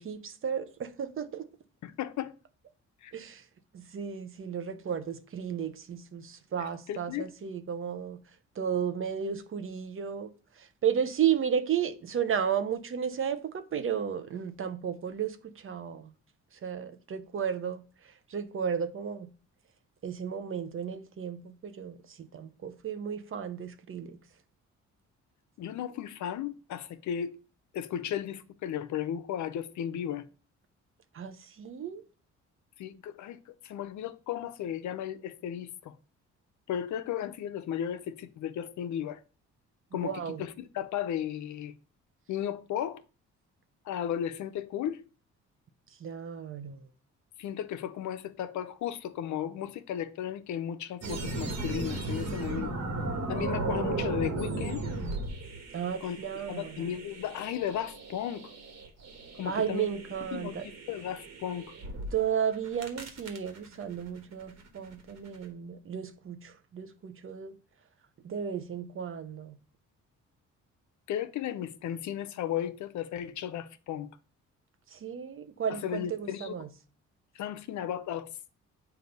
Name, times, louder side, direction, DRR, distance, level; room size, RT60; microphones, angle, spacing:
voice 1, 0.0-1.5 3.1-3.4 3.7-8.2 8.6-10.3 10.6-16.1 16.5-19.3 20.0-24.2 31.1-32.0 39.9-40.4 46.0-46.8 55.7-56.9 59.4-60.7 62.1-67.5 68.2-69.6 74.9-76.7, right 8 dB, 45° right, 0.7 m, -33 dB
voice 2, 1.8-2.3 3.0-3.1 6.9-7.3 25.6-27.3 27.7-30.2 32.8-36.0 36.7-39.2 39.9-41.7 42.3-43.0 43.8-45.0 47.4-52.7 53.3-54.8 56.0-56.2 56.5-58.5 59.4-59.9 60.3-61.7 71.1-74.1 75.8-76.5 77.3-78.3, left 10 dB, 70° left, 0.6 m, -35 dB
sound 1, 51.0-62.1 62.5-65.5, right 2 dB, 60° right, 1.6 m, -36 dB
7.8 x 2.7 x 5.3 m
cardioid pair, 90°, 30 cm